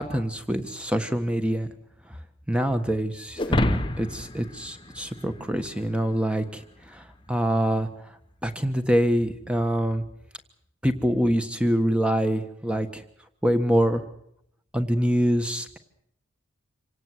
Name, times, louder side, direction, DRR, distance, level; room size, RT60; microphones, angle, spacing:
voice 1, 0.0-1.7 2.5-7.9 8.4-10.0 10.8-13.0 13.4-14.0 14.7-15.8, equal, 5° right, 8 dB, 1.4 m, -25 dB
sound 1, 3.4-5.9, left 1 dB, 25° left, 0.9 m, -28 dB
26.5 x 17.5 x 8.0 m, 0.72 s
head